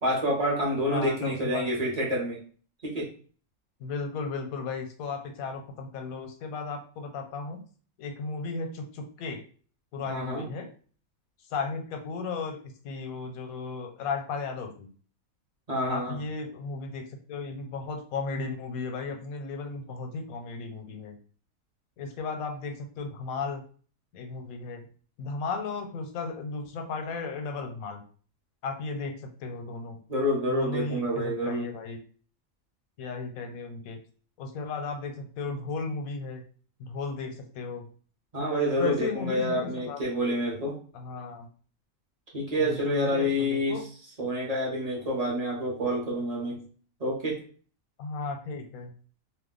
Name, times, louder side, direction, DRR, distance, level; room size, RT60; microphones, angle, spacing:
voice 1, 0.0-2.4 2.8-3.1 10.0-10.5 15.7-16.2 30.1-31.7 38.3-40.8 42.3-43.8 44.2-46.6 47.0-47.4, equal, 30° right, -3 dB, 0.9 m, -28 dB
voice 2, 0.9-1.8 3.8-7.6 8.0-9.5 9.9-10.7 11.5-14.9 15.9-21.2 22.0-23.6 24.1-24.9 25.2-28.0 28.6-30.0 30.5-32.0 33.0-34.0 34.4-36.4 36.8-37.9 38.8-40.0 40.9-41.5 42.6-43.8 48.0-48.9, left 4 dB, 80° left, 5 dB, 1.1 m, -35 dB
2.5 x 2.2 x 3.7 m, 0.42 s
omnidirectional pair, 1.5 m